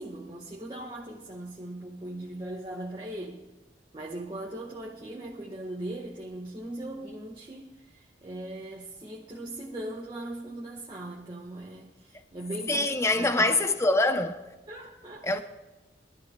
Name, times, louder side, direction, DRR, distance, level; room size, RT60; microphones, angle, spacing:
voice 1, 0.0-3.4 3.9-13.6 14.7-15.4, right 1 dB, 25° right, 1.5 m, -39 dB
voice 2, 12.7-14.4 15.2-15.4, left 2 dB, 15° left, 0.8 m, -24 dB
22.5 x 13.5 x 2.4 m
head